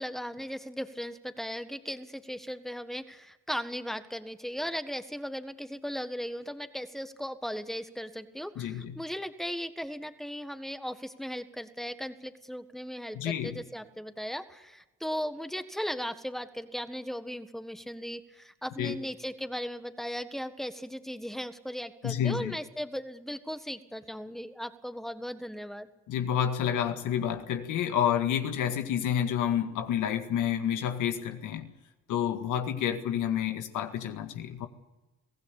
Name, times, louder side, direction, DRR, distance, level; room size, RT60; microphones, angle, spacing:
voice 1, 0.0-25.9, equal, ahead, 1.6 m, -37 dB
voice 2, 8.6-9.0 13.1-13.6 18.8-19.0 22.0-22.6 26.1-31.7 32.1-34.7, left 9 dB, 90° left, 1.9 m, -29 dB
23.0 x 16.5 x 8.4 m
cardioid pair, 90°, 30 cm